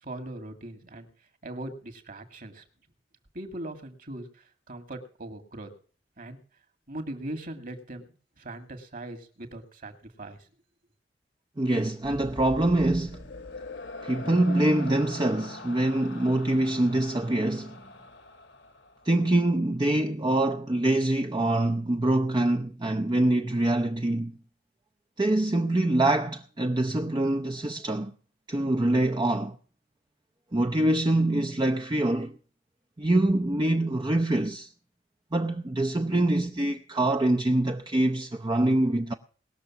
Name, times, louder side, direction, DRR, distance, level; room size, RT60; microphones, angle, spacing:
voice 1, 0.0-1.1 1.4-2.6 3.3-5.7 6.2-6.4 6.9-8.0 8.4-10.5, right 1 dB, 50° right, 2.2 m, -40 dB
voice 2, 11.6-13.2 14.0-17.8 19.0-24.3 25.2-28.1 28.5-29.6 30.5-32.4 33.0-34.7 35.3-39.1, right 1 dB, 25° right, 0.6 m, -25 dB
sound 1, 12.0-19.4, left 2 dB, 65° left, 1.4 m, -43 dB
20.0 x 6.8 x 7.2 m
head